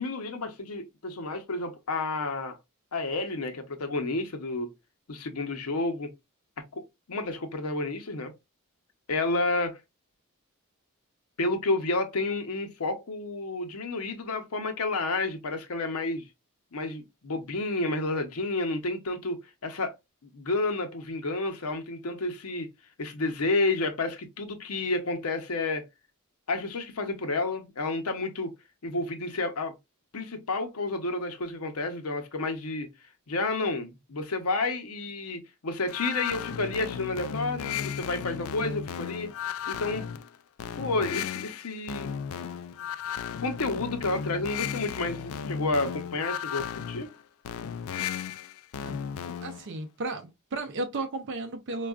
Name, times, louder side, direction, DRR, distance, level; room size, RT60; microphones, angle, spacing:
voice 1, 0.0-2.6 2.9-4.7 5.1-6.1 6.6-8.3 9.1-9.8 11.4-16.3 16.7-19.9 20.2-22.7 23.0-25.9 26.5-28.5 28.8-29.7 30.1-32.9 33.3-39.3 39.7-40.1 40.8-42.1 43.4-47.1, left 2 dB, 85° left, 0.8 m, -30 dB
sound 1, 35.9-49.7, left 8 dB, 65° left, 0.3 m, -35 dB
voice 2, 49.4-51.9, right 2 dB, 55° right, 0.6 m, -34 dB
4.4 x 2.3 x 2.3 m
head